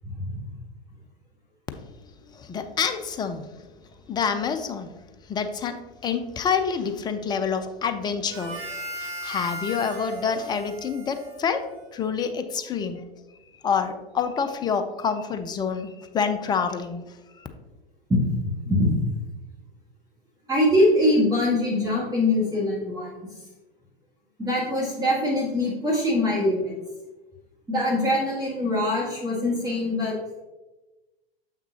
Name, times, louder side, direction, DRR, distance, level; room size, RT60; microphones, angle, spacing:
voice 1, 0.1-0.4 18.1-18.2 18.4-19.2 20.5-23.1 24.4-26.7 27.7-30.1, left 1 dB, 10° right, -6 dB, 1.7 m, -23 dB
voice 2, 2.3-3.4 4.1-4.9 5.3-5.8 6.0-8.6 9.0-11.6 11.9-13.0 13.6-17.0 17.4-17.5, left 6 dB, 15° left, 8 dB, 0.4 m, -27 dB
Harmonica, 8.3-12.1, equal, 50° right, 1.8 m, -37 dB
7.1 x 5.9 x 2.8 m, 1.1 s
figure-of-eight pair, 95°, 31 cm